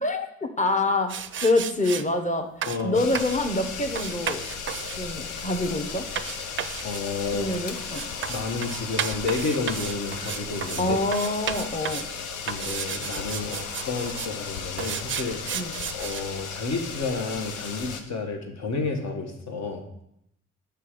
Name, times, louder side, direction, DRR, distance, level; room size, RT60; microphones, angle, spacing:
voice 1, 0.6-4.5 5.0-6.1 7.3-8.1 10.8-12.1 15.5-15.8, left 2 dB, 25° left, 6 dB, 0.9 m, -26 dB
sound 1, 1.1-2.0 2.6-2.8 3.1-3.4 3.9-10.9 11.1-12.1 12.5-14.3 14.8-16.2, right 8 dB, 40° right, 0.4 m, -33 dB
voice 2, 2.7-3.0 6.8-7.5 8.3-11.0 12.4-13.6 13.9-15.4 15.9-19.8, left 3 dB, 65° left, 3 dB, 1.2 m, -30 dB
sound 2, 2.9-18.0, left 5 dB, 85° left, 0.6 m, -35 dB
5.7 x 3.4 x 5.0 m, 0.75 s
supercardioid pair, 45°, 30 cm